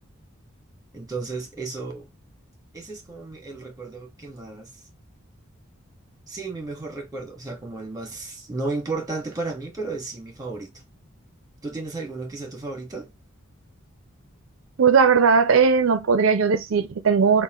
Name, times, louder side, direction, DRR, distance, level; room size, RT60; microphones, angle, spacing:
voice 1, 0.9-2.1 2.7-4.7 6.3-10.7 11.6-13.1, right 3 dB, 15° right, 1.3 m, -33 dB
voice 2, 14.8-17.4, right 5 dB, 75° right, 0.5 m, -18 dB
5.4 x 2.4 x 3.7 m
head